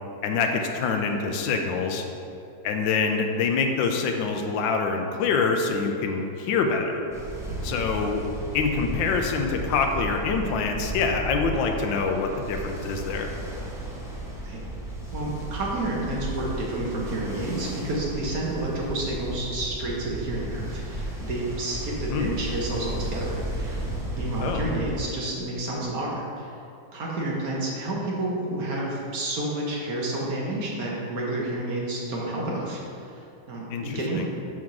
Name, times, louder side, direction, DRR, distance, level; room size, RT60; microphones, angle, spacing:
voice 1, 0.2-2.0 2.6-7.1 7.6-8.2 8.5-13.3 22.1-22.4 24.4-24.7 33.7-34.2, left 4 dB, 80° left, 4 dB, 1.4 m, -25 dB
Ocean, 7.1-25.0, right 1 dB, 5° right, 0.5 m, -34 dB
voice 2, 15.1-23.9 24.1-26.5 26.9-34.3, right 2 dB, 55° right, -3 dB, 1.3 m, -30 dB
6.3 x 3.6 x 5.9 m, 2.7 s
omnidirectional pair, 2.0 m